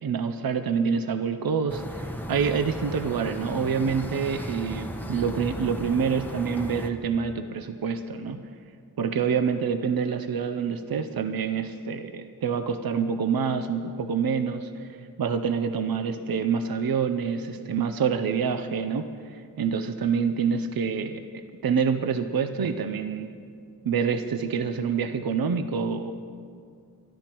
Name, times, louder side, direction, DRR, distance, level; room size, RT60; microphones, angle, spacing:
voice 1, 0.0-8.5 9.0-14.9 15.2-23.3 23.8-26.1, right 6 dB, 70° right, 8 dB, 0.6 m, -27 dB
sound 1, 1.7-6.9, equal, 5° left, 0.8 m, -36 dB
23.0 x 12.5 x 3.0 m, 2.3 s
wide cardioid pair, 90°, 37 cm